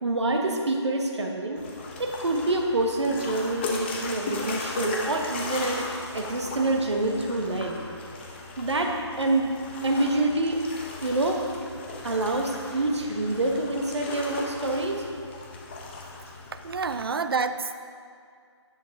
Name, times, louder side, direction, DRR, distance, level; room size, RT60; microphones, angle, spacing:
voice 1, 0.0-1.6 2.0-7.8 8.6-9.5 9.8-10.6 11.0-11.4 12.0-15.0, right 2 dB, 70° right, 2 dB, 1.4 m, -26 dB
sound 1, 1.6-17.1, left 3 dB, 25° left, 0.9 m, -37 dB
voice 2, 16.6-17.7, right 5 dB, 55° right, 10 dB, 0.5 m, -28 dB
10.5 x 7.9 x 3.6 m, 2.3 s
figure-of-eight pair, 160°, 15 cm